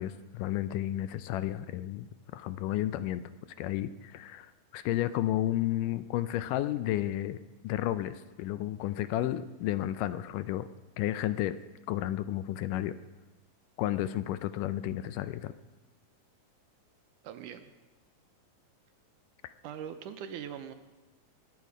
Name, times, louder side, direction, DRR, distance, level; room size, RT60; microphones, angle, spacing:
voice 1, 0.0-3.2 3.6-7.4 7.6-10.7 11.0-11.6 11.9-12.9 13.8-15.5 19.4-19.5, left 13 dB, 80° left, 13 dB, 2.1 m, -32 dB
voice 2, 17.2-17.7 19.6-20.7, right 9 dB, 80° right, 8 dB, 2.1 m, -41 dB
21.5 x 9.3 x 4.9 m, 1.2 s
omnidirectional pair, 3.9 m